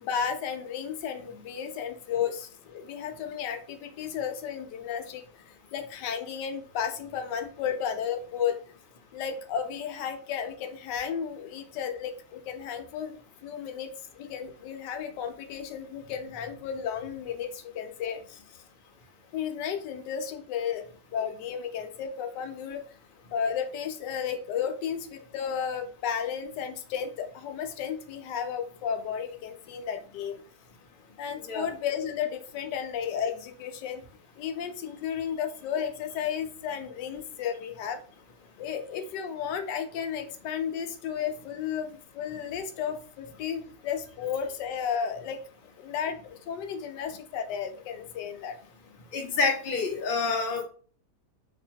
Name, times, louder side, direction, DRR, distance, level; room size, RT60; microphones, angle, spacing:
voice 1, 0.0-8.6 9.1-13.9 14.1-18.4 19.3-20.8 21.1-22.8 23.3-30.4 31.2-34.0 34.4-38.0 38.6-45.4 45.8-48.6, left 8 dB, 85° left, 6 dB, 1.2 m, -33 dB
voice 2, 49.1-50.6, left 4 dB, 45° left, 1 dB, 0.8 m, -27 dB
2.9 x 2.8 x 4.4 m, 0.41 s
omnidirectional pair, 1.8 m